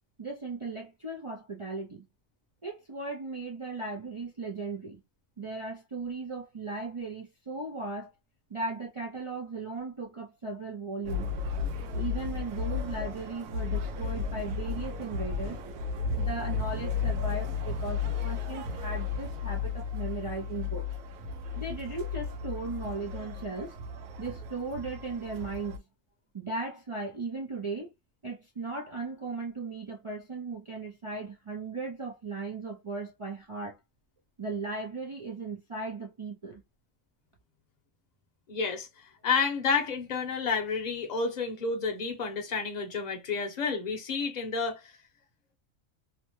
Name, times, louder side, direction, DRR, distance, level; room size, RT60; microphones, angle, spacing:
voice 1, 0.2-2.1 2.6-5.0 5.4-8.1 8.5-11.3 11.9-15.6 16.2-20.9 21.5-25.8 26.3-27.9 28.2-33.8 34.4-36.6, right 3 dB, 55° right, 0.3 m, -37 dB
sound 1, 11.0-25.8, left 5 dB, 85° right, 1.0 m, -34 dB
voice 2, 38.5-44.9, left 5 dB, 40° left, 0.7 m, -30 dB
2.9 x 2.1 x 2.9 m
omnidirectional pair, 1.4 m